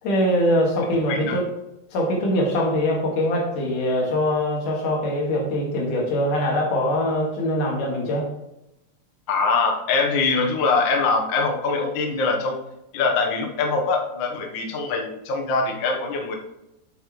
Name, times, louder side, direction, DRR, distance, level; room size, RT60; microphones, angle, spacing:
voice 1, 0.0-1.5 1.9-8.3, left 1 dB, 65° left, -1 dB, 3.4 m, -23 dB
voice 2, 9.3-12.6 12.9-16.3, left 4 dB, 85° left, 2 dB, 1.0 m, -23 dB
8.5 x 7.7 x 3.1 m, 0.91 s
omnidirectional pair, 4.1 m